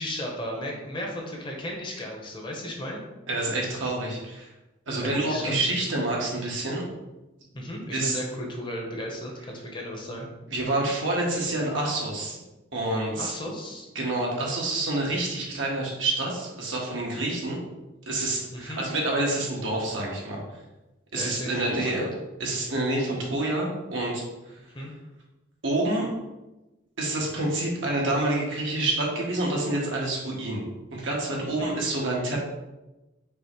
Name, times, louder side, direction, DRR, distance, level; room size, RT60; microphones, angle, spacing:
voice 1, 0.0-3.0 5.0-5.6 7.5-10.3 13.2-13.9 18.5-18.9 21.2-22.1 24.7-24.9 31.6-31.7, left 1 dB, 25° left, 0 dB, 0.8 m, -35 dB
voice 2, 3.3-4.5 4.9-6.8 7.9-8.2 10.5-12.4 12.7-13.3 13.9-17.6 18.1-20.4 21.1-22.0 22.4-24.2 25.6-26.1 27.0-32.4, right 2 dB, 75° right, -2 dB, 1.2 m, -27 dB
5.3 x 2.1 x 4.5 m, 1.0 s
head